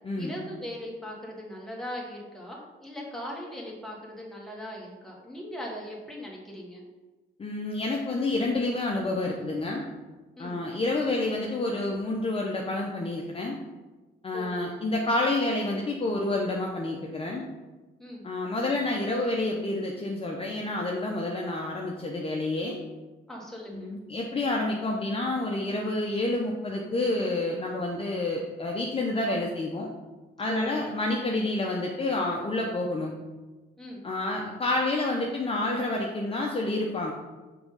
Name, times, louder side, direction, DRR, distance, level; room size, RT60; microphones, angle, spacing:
voice 1, 0.2-6.8 10.4-10.6 14.3-14.6 18.0-18.2 23.3-23.9 30.5-30.7 33.8-34.0, left 1 dB, ahead, -3 dB, 1.7 m, -39 dB
voice 2, 7.4-9.8 10.4-13.6 14.2-17.4 18.2-22.8 23.7-29.9 30.4-33.1 34.0-37.1, left 2 dB, 30° left, -1 dB, 0.8 m, -29 dB
5.9 x 3.6 x 5.4 m, 1.2 s
cardioid pair, 90°, 20 cm